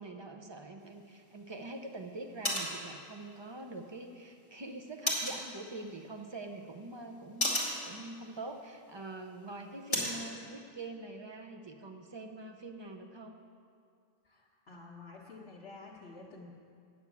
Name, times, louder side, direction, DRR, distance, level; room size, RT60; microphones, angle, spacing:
voice 1, 0.0-13.4, right 2 dB, 30° right, 3 dB, 0.7 m, -45 dB
sound 1, 0.8-10.3, left 1 dB, 25° left, 2.1 m, -39 dB
voice 2, 14.2-16.5, left 3 dB, 75° left, -5 dB, 1.4 m, -50 dB
8.4 x 7.1 x 8.4 m, 2.3 s
omnidirectional pair, 1.1 m